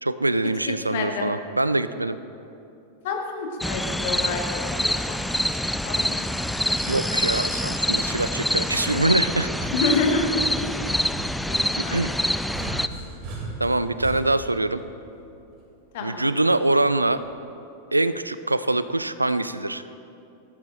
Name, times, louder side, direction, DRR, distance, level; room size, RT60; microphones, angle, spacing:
voice 1, 0.0-2.2 6.9-9.7 11.9-12.1 13.6-14.8 16.0-17.2 17.9-19.8, right 2 dB, 85° right, 14 dB, 0.3 m, -24 dB
voice 2, 0.9-1.3 3.0-5.4 5.8-6.3 9.7-10.2 11.5-12.0 15.9-16.4, left 4 dB, 55° left, 2 dB, 1.5 m, -28 dB
sound 1, 3.6-12.9, left 1 dB, ahead, 0.3 m, -26 dB
sound 2, 9.4-15.5 16.9-17.3, right 2 dB, 40° right, 2.7 m, -38 dB
17.0 x 13.5 x 2.5 m, 2.8 s
figure-of-eight pair, 90°, 0 cm